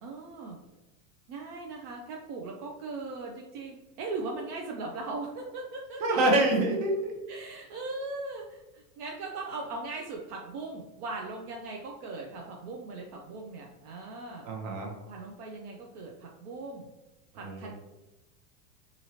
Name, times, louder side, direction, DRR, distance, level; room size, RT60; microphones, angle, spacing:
voice 1, 0.0-0.6 1.3-6.2 7.3-14.5 15.1-16.9 17.3-17.7, right 3 dB, 70° right, 0 dB, 0.6 m, -39 dB
voice 2, 6.0-7.1 14.4-14.9 17.3-17.7, right 1 dB, 45° right, 1 dB, 0.9 m, -26 dB
2.8 x 2.6 x 2.8 m, 1.1 s
supercardioid pair, 120°, 49 cm